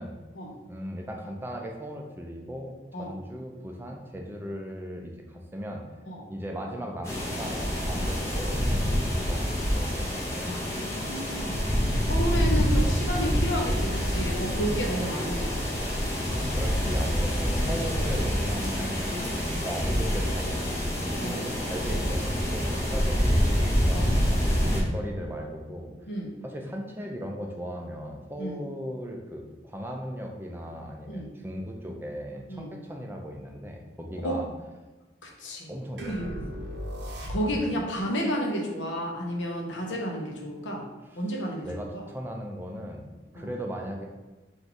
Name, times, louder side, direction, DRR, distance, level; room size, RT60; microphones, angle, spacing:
voice 1, 0.7-5.8 6.3-10.6 16.5-24.2 24.7-25.9 26.4-34.5 35.7-36.3 37.4-37.7 41.1-41.2 41.6-43.1 43.3-44.1, equal, 10° right, 1 dB, 0.5 m, -37 dB
sound 1, 7.0-24.8, equal, 15° left, 1.0 m, -26 dB
voice 2, 10.5-11.6 12.1-15.7 21.2-21.4 23.9-24.1 26.1-26.3 28.4-28.6 31.1-31.3 32.5-32.7 34.2-34.4 35.2-35.7 36.0-36.5 37.3-40.8 41.2-41.7 41.9-42.0 43.4-43.5, equal, 90° left, -1 dB, 0.8 m, -32 dB
sound 2, 36.0-37.9, equal, 65° right, 0.7 m, -37 dB
3.9 x 2.6 x 4.5 m, 1.2 s
head